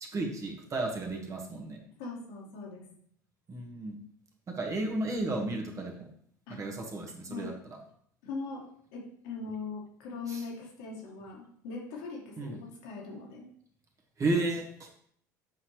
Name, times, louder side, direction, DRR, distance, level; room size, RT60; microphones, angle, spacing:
voice 1, 0.1-1.8 3.5-3.9 4.5-6.1 6.5-7.5 10.3-10.4 12.4-12.5 14.2-14.9, right 2 dB, 35° right, 0 dB, 1.6 m, -33 dB
voice 2, 2.0-2.9 6.5-6.6 7.3-7.5 8.2-8.6 8.9-13.5 14.2-14.3, left 4 dB, 70° left, -2 dB, 1.8 m, -40 dB
7.4 x 4.3 x 3.2 m, 0.64 s
hypercardioid pair, 75°, 10 cm